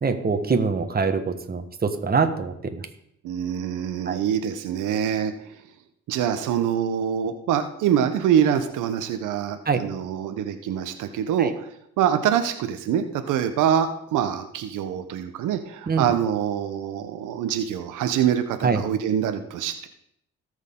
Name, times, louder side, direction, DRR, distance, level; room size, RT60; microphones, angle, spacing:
voice 1, 0.0-2.9 4.1-4.2 9.6-9.8 11.4-11.5 15.9-16.0 18.6-18.8, right 5 dB, 30° right, 6 dB, 1.4 m, -24 dB
voice 2, 3.2-5.3 6.1-11.7 12.0-19.9, right 9 dB, 85° right, 8 dB, 0.9 m, -25 dB
17.5 x 6.4 x 3.8 m, 0.73 s
cardioid pair, 90°, 30 cm